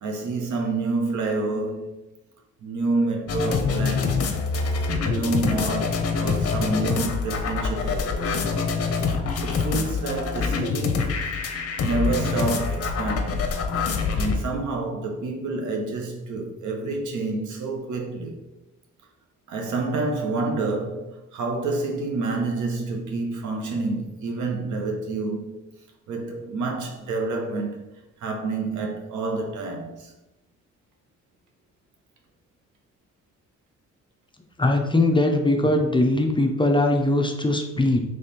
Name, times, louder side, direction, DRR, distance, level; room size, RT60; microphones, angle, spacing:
voice 1, 0.0-2.0 2.6-4.4 5.0-8.4 9.4-11.2 11.8-13.5 14.1-18.5 19.5-25.6 26.1-27.8 28.2-30.1, right 3 dB, 75° right, 1.1 m, -28 dB
sound 1, 3.3-14.4, left 4 dB, 50° left, 0.7 m, -25 dB
voice 2, 34.6-38.0, left 2 dB, 15° left, 0.5 m, -21 dB
3.4 x 3.3 x 4.2 m
cardioid pair, 90°, 30 cm